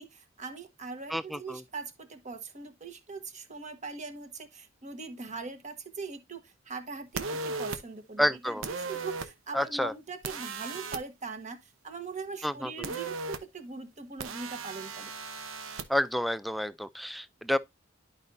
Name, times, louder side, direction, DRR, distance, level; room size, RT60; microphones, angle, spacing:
voice 1, 0.0-15.1, right 4 dB, 40° right, 1.4 m, -41 dB
sound 1, 7.1-7.8 8.6-9.3 10.2-11.0 12.8-13.4 14.2-15.8, right 4 dB, 80° right, 0.9 m, -36 dB
voice 2, 8.2-8.6 9.5-9.9 12.4-12.9 15.9-17.6, equal, ahead, 0.4 m, -29 dB
11.5 x 5.1 x 2.7 m
head